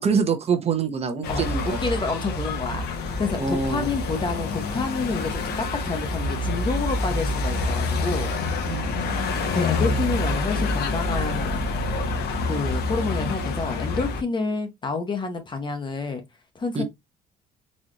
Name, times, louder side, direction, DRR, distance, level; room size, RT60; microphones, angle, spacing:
voice 1, 0.0-1.8 3.4-3.9 8.6-8.9 16.7-16.8, right 5 dB, 40° right, 0.9 m, -25 dB
sound 1, 1.2-14.2, left 2 dB, 75° left, 1.0 m, -27 dB
voice 2, 1.8-8.3 9.5-11.7 12.5-16.2 16.5-16.8, left 4 dB, 30° left, 0.8 m, -29 dB
4.1 x 2.5 x 3.0 m
cardioid pair, 110°, 17 cm